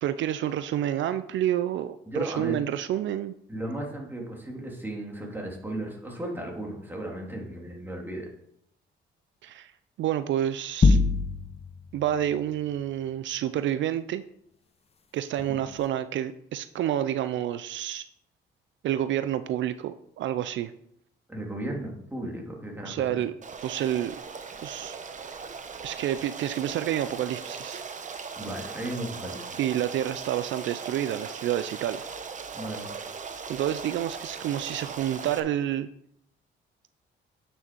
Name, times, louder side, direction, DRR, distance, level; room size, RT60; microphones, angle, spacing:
voice 1, 0.0-3.3 9.4-9.7 10.0-11.0 11.9-14.2 15.1-18.1 18.8-20.7 22.8-23.3 23.6-24.2 24.6-25.0 25.8-27.8 29.6-32.0 33.5-35.9, right 11 dB, 70° right, 12 dB, 0.5 m, -29 dB
voice 2, 2.1-2.5 3.5-8.3 21.3-23.2 28.4-29.6 32.5-32.9, right 1 dB, 10° right, 0 dB, 2.7 m, -35 dB
sound 1, 10.8-11.8, left 3 dB, 30° left, 0.7 m, -21 dB
Stream, 23.4-35.4, right 5 dB, 40° right, 1.0 m, -39 dB
9.3 x 6.3 x 4.5 m, 0.72 s
cardioid pair, 90°, 20 cm